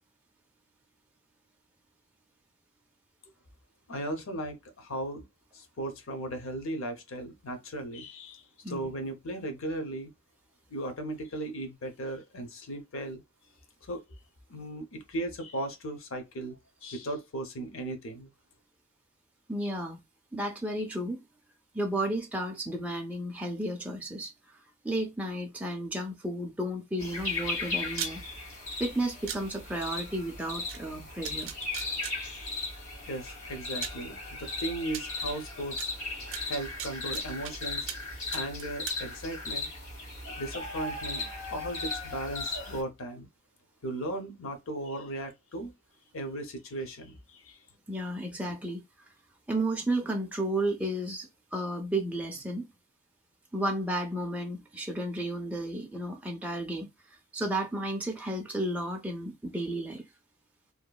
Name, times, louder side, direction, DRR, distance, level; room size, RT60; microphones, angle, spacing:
voice 1, 3.9-5.2 5.5-10.1 10.7-13.2 13.8-14.0 14.5-18.3 33.1-35.9 36.5-39.7 40.4-43.3 43.8-45.7 46.1-47.6, right 1 dB, 65° left, 0.7 m, -37 dB
voice 2, 19.5-20.0 20.3-21.2 21.7-28.5 28.8-31.5 40.3-40.4 47.9-48.8 49.5-52.7 53.5-56.9 57.3-60.0, right 1 dB, 5° right, 0.4 m, -33 dB
sound 1, 27.0-42.8, left 3 dB, 90° left, 1.7 m, -37 dB
sound 2, 28.0-28.1 29.3-29.4 30.7-30.8 31.2-32.1 33.2-33.3 33.8-34.0 34.9-35.0 35.8-35.9 36.3-37.5 37.9-38.1 38.3-39.0, right 9 dB, 65° right, 0.5 m, -37 dB
2.9 x 2.3 x 2.2 m
head